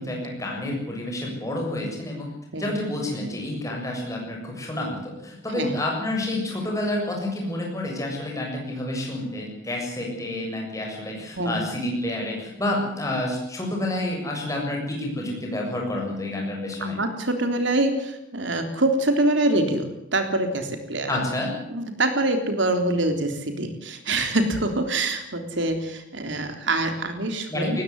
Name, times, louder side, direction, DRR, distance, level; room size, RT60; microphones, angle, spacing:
voice 1, 0.0-2.3 2.6-17.0 21.1-21.6 27.5-27.8, left 1 dB, 15° left, 0 dB, 7.3 m, -29 dB
voice 2, 16.8-21.1 21.7-27.8, right 2 dB, 65° right, 6 dB, 3.6 m, -25 dB
19.0 x 16.0 x 9.9 m, 0.85 s
head